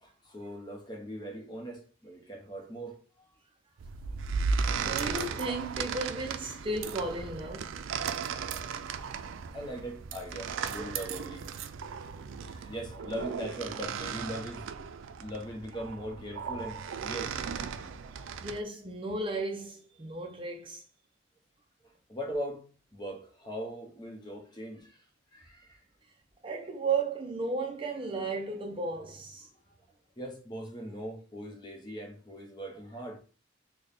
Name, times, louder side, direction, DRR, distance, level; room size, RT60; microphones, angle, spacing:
voice 1, 0.0-3.3 9.5-11.5 12.4-14.7 15.2-17.4 17.7-18.3 21.8-25.0 25.3-25.8 30.2-33.2, equal, 25° left, 0.7 m, -40 dB
sound 1, 3.8-18.6, right 5 dB, 90° right, 0.4 m, -36 dB
voice 2, 4.7-7.8 18.4-20.8 26.4-29.5, right 3 dB, 25° right, 0.5 m, -34 dB
4.0 x 2.2 x 3.3 m
head